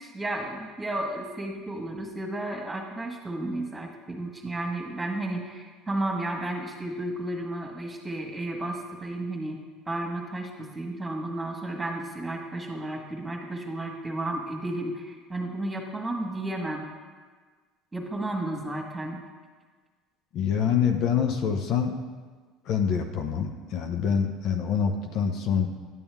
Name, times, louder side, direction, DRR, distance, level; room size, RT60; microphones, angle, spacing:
voice 1, 0.0-9.6 9.9-16.9 17.9-19.2, right 1 dB, 15° right, 1 dB, 1.6 m, -33 dB
voice 2, 20.3-21.9 22.7-25.7, left 7 dB, 60° left, 4 dB, 0.8 m, -25 dB
11.0 x 7.0 x 3.5 m, 1.5 s
hypercardioid pair, 80°, 0 cm